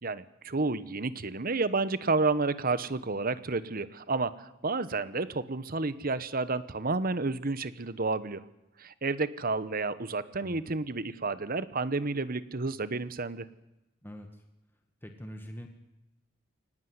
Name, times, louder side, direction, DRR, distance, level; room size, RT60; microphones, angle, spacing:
voice 1, 0.0-8.4 8.8-13.5, right 3 dB, 50° right, 15 dB, 1.1 m, -31 dB
voice 2, 10.4-10.7 14.0-14.4 15.0-15.7, equal, 10° left, 4 dB, 1.7 m, -44 dB
23.0 x 18.5 x 9.7 m, 0.96 s
head